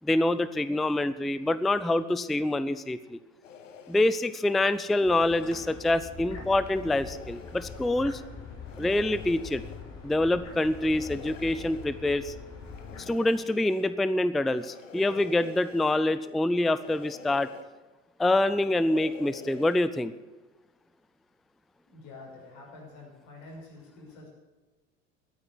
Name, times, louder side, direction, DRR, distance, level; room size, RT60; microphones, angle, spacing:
voice 1, 0.0-3.2 3.9-8.2 8.8-9.6 10.0-12.3 13.0-17.5 18.2-20.1, left 1 dB, ahead, 15 dB, 0.4 m, -26 dB
sound 1, 3.4-4.1 4.8-6.1 6.6-7.9 8.7-9.8 10.5-11.9 12.6-13.9 14.5-16.0 16.6-17.7 18.3-19.9, left 6 dB, 80° left, 1.3 m, -47 dB
sound 2, 5.0-13.0, left 5 dB, 40° left, 3.9 m, -43 dB
voice 2, 21.9-24.3, left 2 dB, 55° left, -1 dB, 6.4 m, -47 dB
12.5 x 9.0 x 9.8 m, 1.2 s
figure-of-eight pair, 70°, 38 cm